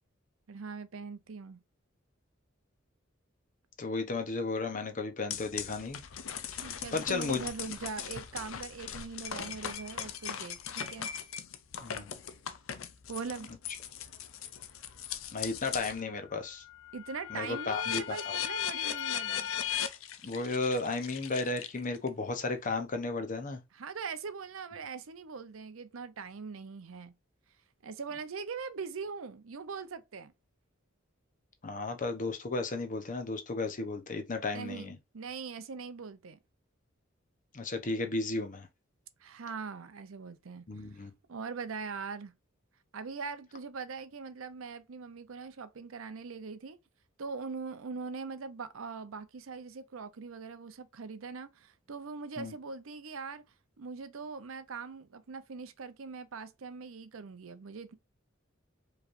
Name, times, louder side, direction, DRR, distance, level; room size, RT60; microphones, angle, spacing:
voice 1, 0.5-1.6 6.6-11.1 13.1-13.5 16.9-19.6 23.7-27.1 27.8-30.3 34.5-36.4 39.2-40.7 40.9-41.0 41.3-42.3 42.9-46.8 47.2-53.4 53.8-57.9, right 5 dB, 85° right, 0.6 m, -41 dB
voice 2, 3.8-6.0 6.6-7.4 11.8-12.1 15.3-16.6 17.3-18.4 20.2-23.6 31.6-35.0 37.5-38.7 40.7-41.1 52.4-52.5, left 3 dB, 40° left, 0.8 m, -34 dB
sound 1, 5.3-16.0 16.4-22.1, left 9 dB, 75° left, 0.5 m, -38 dB
4.9 x 3.2 x 2.5 m
head